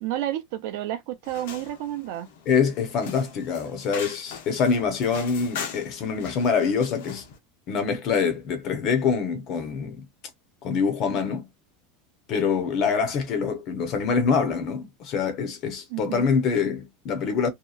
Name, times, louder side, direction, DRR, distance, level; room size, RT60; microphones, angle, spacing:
voice 1, 0.0-2.3 15.9-16.3, right 13 dB, 55° right, 0.5 m, -31 dB
sound 1, 1.2-7.4, left 6 dB, 70° left, 0.8 m, -40 dB
voice 2, 2.5-7.2 7.7-10.1 10.6-11.5 12.3-17.5, left 6 dB, 35° left, 0.7 m, -25 dB
2.8 x 2.3 x 2.3 m
supercardioid pair, 175°, 0 cm